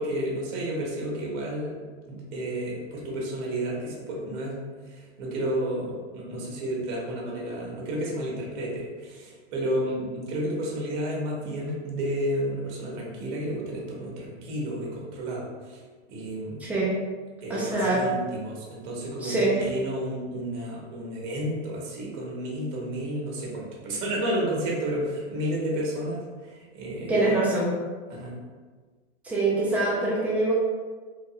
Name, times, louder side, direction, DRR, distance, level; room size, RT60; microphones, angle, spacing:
voice 1, 0.0-1.8 2.1-15.8 16.1-16.7 17.4-27.1 28.1-28.3, right 1 dB, 40° right, -3 dB, 1.0 m, -31 dB
voice 2, 16.6-16.9 17.5-18.0 19.2-19.5 27.1-27.7 29.2-30.5, right 2 dB, 5° right, -7 dB, 0.4 m, -24 dB
3.1 x 2.3 x 2.8 m, 1.4 s
supercardioid pair, 140°, 34 cm